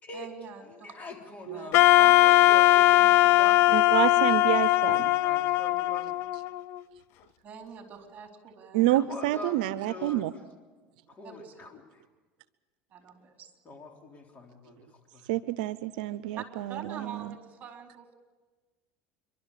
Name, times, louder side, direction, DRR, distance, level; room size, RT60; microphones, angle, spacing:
voice 1, 0.1-0.9 1.5-1.7 7.4-8.8 11.2-11.6 12.9-13.5 16.4-16.5 16.7-18.2, right 7 dB, 35° right, 3 dB, 4.1 m, -44 dB
voice 2, 0.7-3.9 4.9-6.2 8.9-10.2 11.1-12.0 13.6-15.3, left 2 dB, 35° left, 2 dB, 3.6 m, -43 dB
Wind instrument woodwind instrument, 1.7-6.8, left 16 dB, 60° left, 0.6 m, -20 dB
voice 3, 3.7-5.1 8.7-10.3 15.3-17.4, right 15 dB, 85° right, 16 dB, 0.6 m, -28 dB
28.0 x 12.0 x 8.5 m, 1.3 s
supercardioid pair, 105°, 5 cm